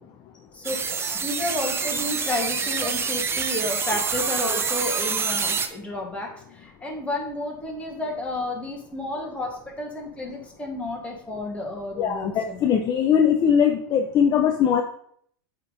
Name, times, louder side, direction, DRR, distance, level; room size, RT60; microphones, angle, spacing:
voice 1, 0.5-12.7, left 1 dB, 10° left, -1 dB, 2.0 m, -31 dB
sound 1, 0.6-5.7, right 5 dB, 20° right, 0.7 m, -26 dB
voice 2, 12.0-14.8, left 8 dB, 35° left, 5 dB, 0.6 m, -20 dB
8.1 x 3.7 x 4.0 m, 0.65 s
hypercardioid pair, 105°, 12 cm